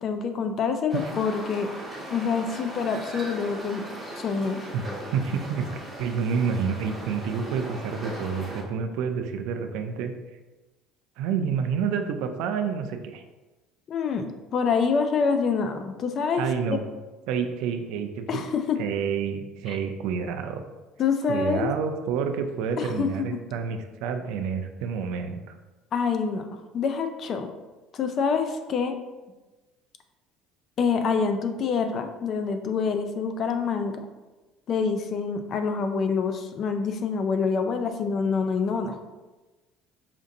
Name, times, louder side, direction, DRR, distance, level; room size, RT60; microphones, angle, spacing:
voice 1, 0.0-1.7 2.1-3.8 4.2-4.6 13.9-16.4 18.3-18.8 19.7-19.8 21.0-21.7 22.8-23.4 25.9-27.5 27.9-29.0 30.8-34.0 34.7-39.0, left 5 dB, 40° left, 7 dB, 0.4 m, -26 dB
sound 1, 0.9-8.6, right 1 dB, ahead, 1.2 m, -38 dB
voice 2, 5.1-5.7 6.0-10.1 11.2-13.2 16.4-16.8 17.3-18.4 18.8-20.6 21.3-25.6, right 6 dB, 75° right, 7 dB, 0.4 m, -28 dB
5.0 x 2.5 x 2.6 m, 1.2 s
cardioid pair, 140°, 0 cm